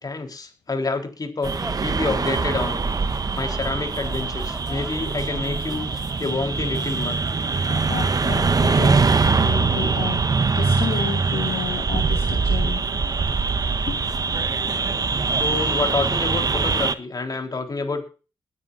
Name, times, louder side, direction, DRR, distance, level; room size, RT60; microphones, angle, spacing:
voice 1, 0.0-2.9 3.4-5.9 6.2-7.2 15.3-18.0, left 3 dB, 40° left, 5 dB, 3.9 m, -28 dB
sound 1, 1.4-8.3, right 1 dB, 5° right, 2.1 m, -41 dB
sound 2, 1.4-16.9, right 4 dB, 40° right, 1.1 m, -23 dB
voice 2, 7.4-12.8 13.9-14.0 14.5-14.7, left 7 dB, 70° left, 3 dB, 2.3 m, -32 dB
22.0 x 9.9 x 2.6 m, 0.35 s
hypercardioid pair, 40°, 10 cm